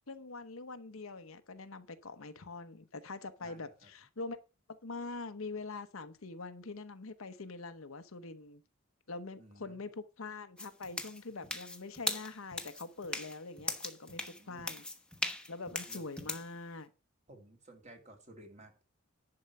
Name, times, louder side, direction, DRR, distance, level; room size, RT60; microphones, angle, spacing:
voice 1, 0.1-4.4 4.7-8.6 9.1-14.2 14.5-14.8 15.5-16.9, left 3 dB, 75° left, 1.0 m, -44 dB
voice 2, 3.4-3.9 9.4-9.8 14.1-14.7 15.9-16.0 17.3-18.8, right 1 dB, 35° right, 2.3 m, -56 dB
sound 1, 10.6-16.5, left 2 dB, 5° left, 1.1 m, -39 dB
11.0 x 4.8 x 6.9 m
head